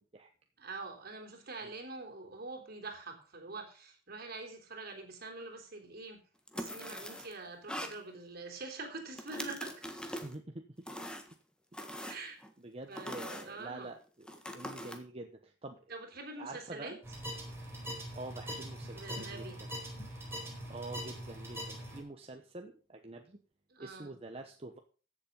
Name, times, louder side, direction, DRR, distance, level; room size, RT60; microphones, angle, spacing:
voice 1, 0.6-6.2 6.5-10.2 12.0-12.4 12.9-13.9 15.9-17.0 18.9-19.6 23.7-24.1, right 3 dB, 55° right, 2 dB, 3.6 m, -45 dB
sound 1, 6.5-7.3 7.7-8.0 9.1-10.3 10.9-11.3 11.7-12.5 13.0-13.5 14.3-15.0, equal, 5° left, 1.5 m, -42 dB
voice 2, 10.2-10.6 12.6-14.3 14.5-15.9 16.4-17.0 18.1-19.7 20.7-23.4 23.8-24.8, right 2 dB, 30° right, 4 dB, 1.0 m, -46 dB
sound 2, 17.0-22.0, equal, 15° right, 4.5 m, -42 dB
15.0 x 7.3 x 5.4 m, 0.38 s
head